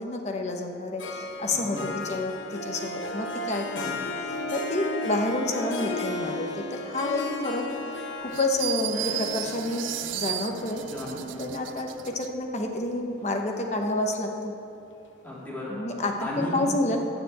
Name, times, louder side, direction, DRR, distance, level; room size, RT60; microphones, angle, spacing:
voice 1, 0.0-4.0 4.5-7.6 8.2-9.9 10.1-10.8 11.4-14.5 15.7-17.0, left 2 dB, 35° left, 2 dB, 1.0 m, -29 dB
Harp, 1.0-12.4, left 2 dB, 80° left, 1.0 m, -35 dB
voice 2, 1.5-1.9 3.7-4.0 10.8-11.5 15.2-15.8 16.2-16.7, left 1 dB, 10° left, -8 dB, 2.8 m, -35 dB
sound 1, 8.3-12.3, right 13 dB, 85° right, 0.4 m, -34 dB
9.8 x 7.0 x 7.9 m, 2.8 s
head